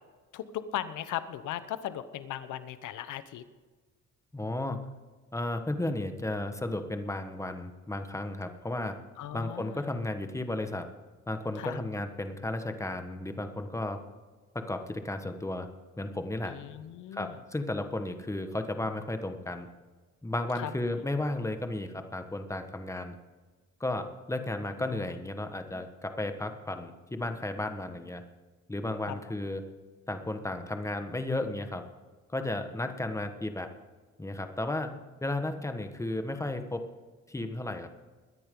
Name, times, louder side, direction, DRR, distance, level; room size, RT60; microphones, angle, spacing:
voice 1, 0.3-3.4 9.2-9.8 11.6-11.8 16.5-17.4 20.6-20.7 29.1-29.2, left 11 dB, 80° left, 13 dB, 0.9 m, -37 dB
voice 2, 4.3-4.8 5.3-8.9 9.3-10.8 11.3-14.0 14.5-15.7 16.0-16.6 17.1-19.7 20.2-23.1 23.8-28.2 28.7-29.6 30.1-31.8 32.3-33.7 34.2-34.9 35.2-36.8 37.3-37.9, left 2 dB, 10° left, 7 dB, 1.4 m, -34 dB
22.0 x 10.5 x 3.8 m, 1.4 s
cardioid pair, 90°, 30 cm